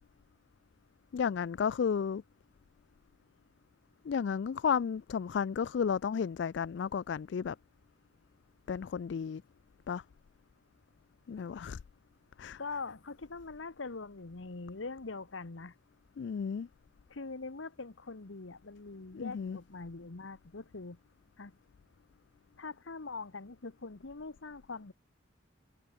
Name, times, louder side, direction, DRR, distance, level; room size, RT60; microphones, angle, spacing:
voice 1, 1.1-2.2 4.1-7.6 8.7-9.4 9.9-10.0 11.3-11.8 12.4-12.6 16.2-16.7 19.1-19.6, left 6 dB, 65° left, 0.3 m, -33 dB
voice 2, 12.6-15.7 17.1-21.0 21.4-21.6 22.6-24.9, left 3 dB, 80° left, 1.1 m, -43 dB
head